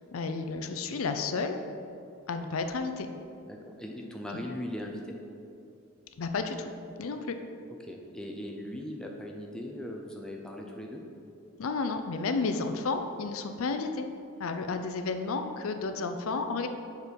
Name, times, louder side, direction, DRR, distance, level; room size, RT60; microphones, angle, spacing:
voice 1, 0.1-1.6 2.3-3.1 6.2-6.7 7.0-7.4 11.6-14.1 14.4-16.7, left 4 dB, 80° left, 7 dB, 0.5 m, -32 dB
voice 2, 3.5-5.2 7.1-7.2 7.8-11.0, left 1 dB, 5° left, 0 dB, 0.5 m, -39 dB
6.7 x 4.6 x 5.2 m, 2.6 s
head